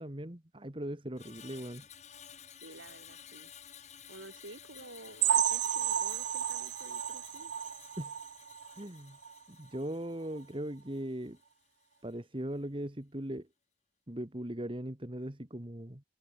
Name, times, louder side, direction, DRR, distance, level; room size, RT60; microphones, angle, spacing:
voice 1, 0.0-1.8 8.0-8.2 8.8-9.2 9.5-11.4 12.0-13.5 14.1-16.0, right 1 dB, 25° right, 1.8 m, -39 dB
Screech, 1.1-11.5 11.8-12.1, left 8 dB, 35° left, 2.5 m, -54 dB
voice 2, 2.6-3.5 4.1-7.5, right 2 dB, 90° right, 3.4 m, -51 dB
sound 1, 5.2-8.8 9.2-9.4 9.7-9.8 10.3-10.4, right 9 dB, 65° right, 0.5 m, -32 dB
head